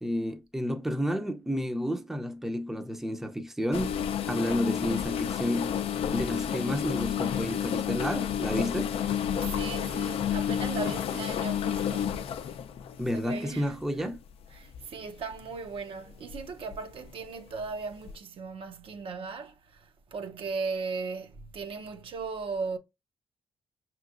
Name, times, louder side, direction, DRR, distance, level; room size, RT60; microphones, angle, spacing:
voice 1, 0.0-4.0 4.3-5.8 6.1-8.9 13.0-14.2, equal, 5° right, 0.5 m, -31 dB
sound 1, 3.7-13.9 14.6-14.8 15.3-15.5 16.3-16.8 17.1-17.2 18.1-18.2, left 9 dB, 85° left, 0.4 m, -30 dB
voice 2, 9.3-12.1 13.1-14.2 14.5-22.8, right 4 dB, 70° right, 0.7 m, -37 dB
5.1 x 3.0 x 2.4 m
cardioid pair, 100°, 10 cm